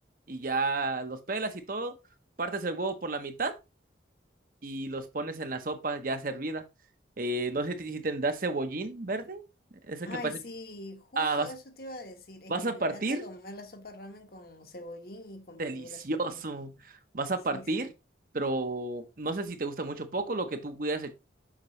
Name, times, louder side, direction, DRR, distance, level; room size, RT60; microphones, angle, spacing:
voice 1, 0.3-1.9 2.4-3.6 4.6-6.6 7.2-9.4 9.9-10.3 11.2-11.5 12.5-13.3 15.6-17.9 18.3-21.1, right 2 dB, 50° right, 0.9 m, -32 dB
voice 2, 10.0-16.4 17.5-17.9, left 2 dB, 55° left, 1.2 m, -44 dB
7.3 x 5.4 x 3.1 m
head